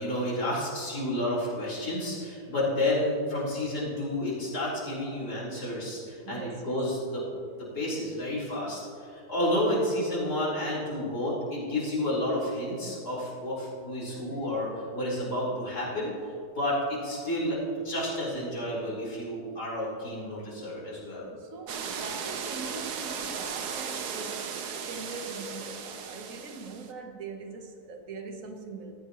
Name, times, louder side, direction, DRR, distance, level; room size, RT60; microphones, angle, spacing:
voice 1, 0.0-7.2 7.7-16.1 16.5-17.6 17.8-21.3, left 1 dB, 75° left, 4.7 m, -30 dB
voice 2, 6.2-6.8 21.3-28.9, right 3 dB, 60° right, 1.6 m, -42 dB
sound 1, 21.7-26.9, right 6 dB, 80° right, 1.5 m, -36 dB
17.5 x 15.0 x 3.0 m
omnidirectional pair, 1.7 m